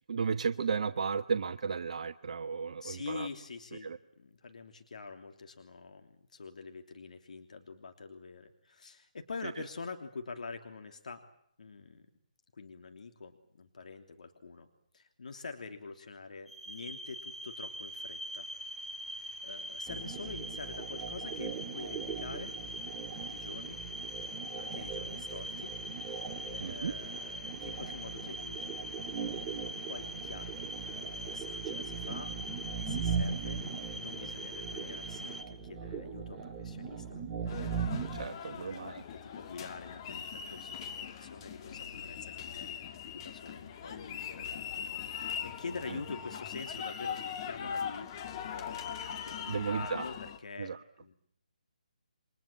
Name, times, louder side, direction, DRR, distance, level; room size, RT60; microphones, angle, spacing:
voice 1, 0.1-3.3 3.8-4.0 9.4-9.5 26.6-26.9 38.1-39.0 45.9-46.0 49.5-50.1 50.6-50.8, right 5 dB, 55° right, 9 dB, 1.1 m, -34 dB
voice 2, 2.8-11.2 11.6-12.1 12.5-14.7 14.9-18.5 19.1-22.5 23.1-23.8 24.2-25.7 26.1-28.7 29.9-32.3 32.8-33.6 33.9-37.8 38.5-51.1, left 4 dB, 65° left, 6 dB, 3.1 m, -46 dB
sound 1, 16.5-35.4, equal, ahead, 2.4 m, -42 dB
sound 2, 19.9-38.3, right 6 dB, 20° right, 2.6 m, -39 dB
sound 3, 37.5-50.4, left 7 dB, 30° left, 2.0 m, -41 dB
29.0 x 24.0 x 7.4 m, 0.70 s
figure-of-eight pair, 150°, 4 cm